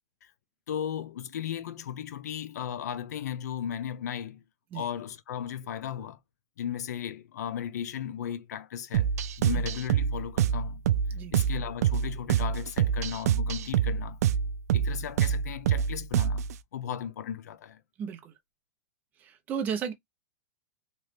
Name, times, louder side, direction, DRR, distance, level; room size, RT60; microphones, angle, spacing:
voice 1, 0.7-4.4 4.7-6.2 6.6-9.1 9.4-10.8 11.3-14.2 14.7-16.4 16.7-17.8, left 9 dB, 80° left, 0.6 m, -36 dB
sound 1, 8.9-16.5, right 9 dB, 70° right, 0.4 m, -26 dB
voice 2, 18.0-18.3 19.2-19.9, right 7 dB, 20° right, 0.6 m, -34 dB
3.0 x 2.4 x 3.3 m
supercardioid pair, 165°, 9 cm